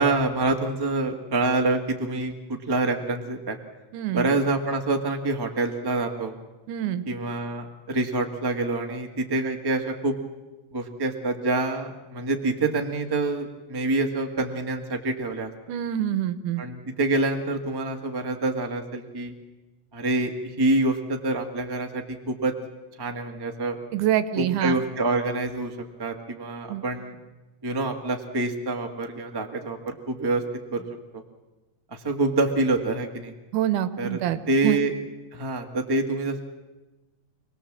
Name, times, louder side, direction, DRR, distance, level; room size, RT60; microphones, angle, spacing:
voice 1, 0.0-3.6 4.1-6.4 7.0-10.2 10.7-15.5 16.6-19.3 19.9-22.5 23.0-23.8 24.4-25.7 26.0-27.1 27.6-30.4 30.7-31.2 31.9-33.3 34.0-34.2 34.5-34.9 35.3-36.4, right 2 dB, 30° right, 3 dB, 0.4 m, -26 dB
voice 2, 3.9-4.3 6.7-7.1 15.7-16.6 23.9-24.8 26.7-26.8 33.5-34.8, right 12 dB, 75° right, 13 dB, 2.3 m, -26 dB
26.0 x 19.0 x 7.4 m, 1.1 s
omnidirectional pair, 3.9 m